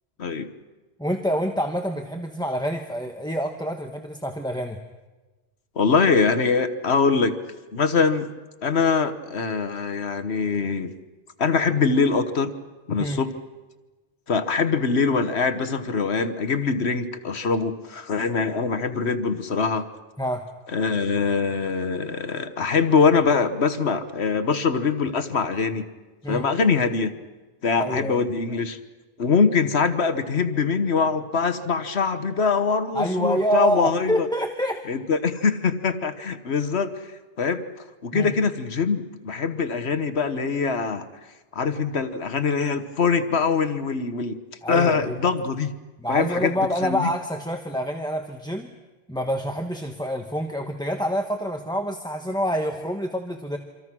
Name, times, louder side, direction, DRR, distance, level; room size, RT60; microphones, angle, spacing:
voice 1, 0.2-0.5 5.8-7.3 7.7-8.3 8.6-10.9 11.4-12.5 12.9-13.3 14.3-19.9 20.7-25.9 26.3-27.1 27.6-28.8 29.2-34.3 34.9-37.1 37.4-37.6 38.0-41.1 41.5-44.4 44.7-45.7 46.1-46.5 46.8-47.1, left 5 dB, 70° left, 10 dB, 1.4 m, -23 dB
voice 2, 1.0-4.8 13.0-13.2 20.2-20.5 26.2-26.5 27.8-28.3 32.9-34.8 38.1-38.3 44.6-45.2 46.0-48.7 49.1-53.6, equal, 5° left, 4 dB, 1.1 m, -27 dB
27.5 x 26.0 x 6.1 m, 1.2 s
omnidirectional pair, 1.1 m